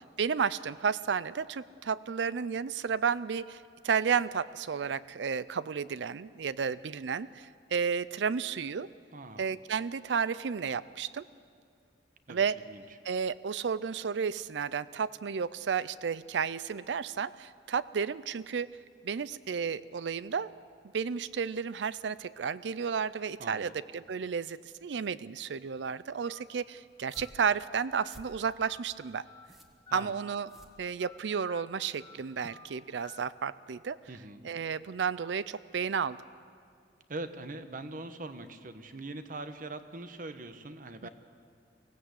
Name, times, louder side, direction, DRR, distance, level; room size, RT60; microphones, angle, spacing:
voice 1, 0.2-8.9 9.4-11.3 12.3-12.6 13.0-18.7 19.0-20.5 20.9-29.2 29.9-30.5 30.8-34.0 34.4-36.2 41.0-41.1, right 6 dB, 80° right, 17 dB, 0.5 m, -32 dB
voice 2, 9.1-9.5 12.3-12.8 23.4-23.7 29.9-30.1 34.1-34.4 37.1-41.1, right 2 dB, 50° right, 10 dB, 1.2 m, -42 dB
Telephone, 26.2-26.4 27.1-27.3 27.9-28.1 28.6-28.8 29.3-29.5 29.9-30.1 30.5-30.6 31.0-31.2 31.5-31.6 32.0-32.2 32.5-32.7 33.0-33.2, left 7 dB, 25° left, 2.0 m, -52 dB
sound 1, 26.9-31.4, equal, ahead, 1.6 m, -56 dB
24.0 x 16.5 x 8.3 m, 2.2 s
head